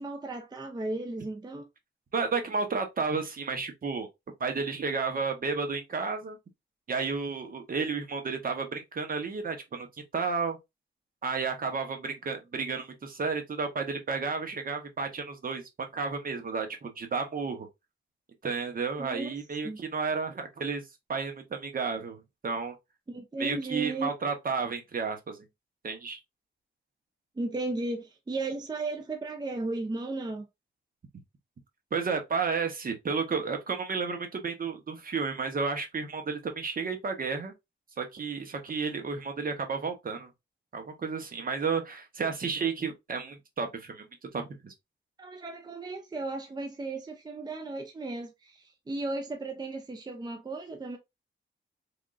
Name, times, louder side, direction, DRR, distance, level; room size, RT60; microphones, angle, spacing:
voice 1, 0.0-1.7 19.0-19.3 19.6-19.8 23.1-24.1 27.4-30.5 45.2-51.0, right 2 dB, 20° right, 0.6 m, -35 dB
voice 2, 2.1-4.1 4.4-6.4 6.9-9.9 10.1-10.6 11.2-17.7 18.4-20.8 21.1-22.7 23.4-25.4 25.8-26.2 31.9-37.5 38.0-40.3 40.7-44.1 44.3-44.7, right 5 dB, 45° right, 0.9 m, -32 dB
3.6 x 3.5 x 2.4 m
wide cardioid pair, 130°, 20 cm